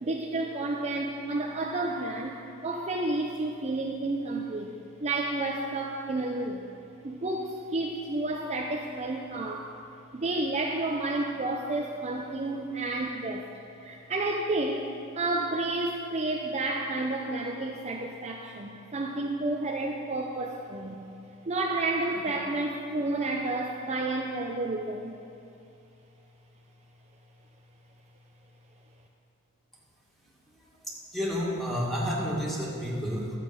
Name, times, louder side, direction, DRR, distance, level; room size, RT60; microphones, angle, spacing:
voice 1, 0.0-6.6 7.0-9.8 10.1-13.5 13.8-21.0 21.4-25.2, right 2 dB, 30° right, 0 dB, 0.6 m, -31 dB
voice 2, 30.8-33.4, equal, ahead, -6 dB, 2.1 m, -30 dB
12.5 x 8.2 x 5.3 m, 2.5 s
head